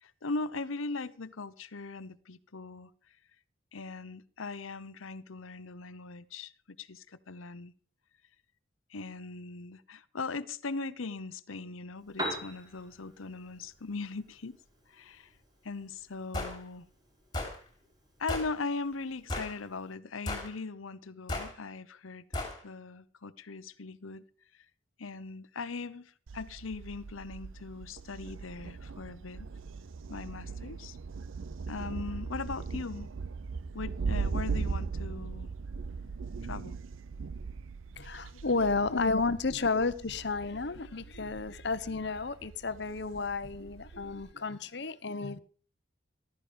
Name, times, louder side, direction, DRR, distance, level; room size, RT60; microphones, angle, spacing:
voice 1, 0.0-2.9 3.7-6.5 6.8-7.7 8.9-14.6 14.9-15.3 15.6-16.9 18.2-22.2 22.6-24.2 25.0-29.5 30.1-31.0 31.7-33.1 33.7-35.5 36.4-36.8 38.5-39.2, left 3 dB, 85° left, 0.9 m, -39 dB
Piano, 11.9-19.9, equal, 20° right, 4.8 m, -45 dB
sound 1, 16.3-16.6 17.3-17.6 18.3-18.5 19.3-19.6 20.3-20.5 21.3-21.5 22.3-22.6, left 2 dB, 20° left, 3.3 m, -34 dB
Thunder, 26.3-44.3, right 4 dB, 80° right, 0.6 m, -39 dB
voice 2, 37.9-45.4, left 3 dB, 55° left, 0.9 m, -32 dB
15.0 x 12.5 x 5.1 m
head